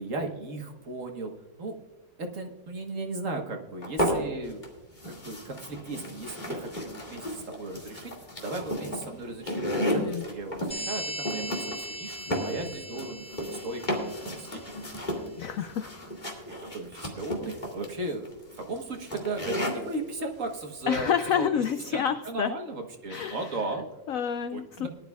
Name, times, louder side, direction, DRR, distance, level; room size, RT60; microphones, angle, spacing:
voice 1, 0.0-1.3 1.6-1.8 2.2-4.6 5.0-8.1 8.4-12.2 12.4-13.3 13.6-14.5 15.0-15.2 16.3-21.5 21.9-23.8 24.5-24.9, right 2 dB, 50° right, 3 dB, 1.5 m, -36 dB
sound 1, 3.8-4.7 5.0-20.0, equal, 25° left, 2.2 m, -33 dB
voice 2, 9.9-10.2 15.4-15.9 20.9-22.6 23.1-23.6 24.1-24.9, left 8 dB, 75° left, 10 dB, 0.7 m, -28 dB
sound 2, 10.7-15.0, right 1 dB, 5° left, 0.5 m, -39 dB
20.0 x 11.0 x 2.4 m, 1.2 s
omnidirectional pair, 1.9 m